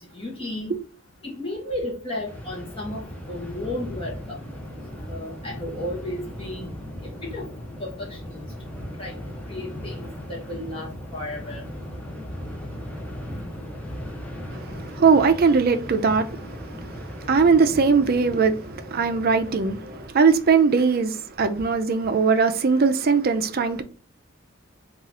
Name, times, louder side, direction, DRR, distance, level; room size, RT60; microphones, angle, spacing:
voice 1, 0.1-0.8 1.2-4.1 5.1-6.7 7.0-7.4 7.8-8.5 9.0-9.1 9.5-11.6 13.3-13.4, left 1 dB, 25° left, 1.0 m, -33 dB
sound 1, 2.3-20.1, equal, 5° left, 0.7 m, -37 dB
voice 2, 15.0-16.6 17.2-19.9 20.1-23.8, right 5 dB, 45° right, 0.4 m, -20 dB
3.7 x 2.4 x 4.1 m
head